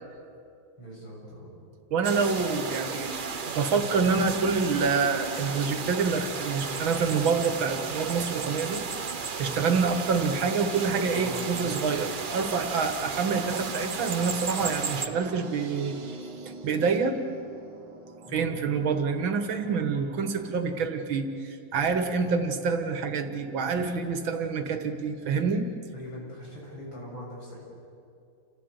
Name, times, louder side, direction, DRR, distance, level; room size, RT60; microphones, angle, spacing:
voice 1, 0.8-1.5 10.9-11.9 18.2-18.5 25.9-27.6, left 1 dB, 80° left, -4 dB, 7.6 m, -41 dB
voice 2, 1.9-3.2 3.5-8.8 9.4-16.0 16.5-17.2 18.3-25.7, right 5 dB, 80° right, 7 dB, 2.3 m, -27 dB
sound 1, 2.0-15.1, right 5 dB, 40° right, 0.7 m, -34 dB
sound 2, 14.6-20.6, right 3 dB, 65° right, 2.1 m, -45 dB
28.5 x 15.5 x 8.1 m, 2.6 s
omnidirectional pair, 2.1 m